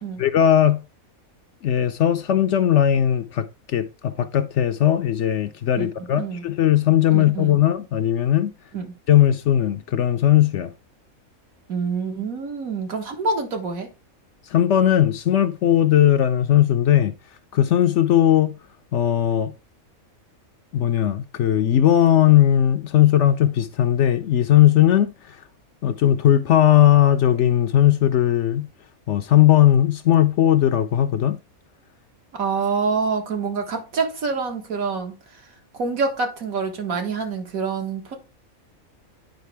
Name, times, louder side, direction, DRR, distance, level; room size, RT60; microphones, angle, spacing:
voice 1, 0.2-0.8 1.6-8.5 9.1-10.7 14.5-17.1 17.5-18.6 18.9-19.5 20.7-25.4 25.8-28.6 29.1-31.4, left 11 dB, 65° left, 0.8 m, -18 dB
voice 2, 5.8-6.4 7.1-7.6 8.7-9.0 11.7-13.9 32.3-35.2 35.8-38.2, right 4 dB, 75° right, 1.8 m, -26 dB
9.3 x 5.0 x 3.3 m
omnidirectional pair, 1.5 m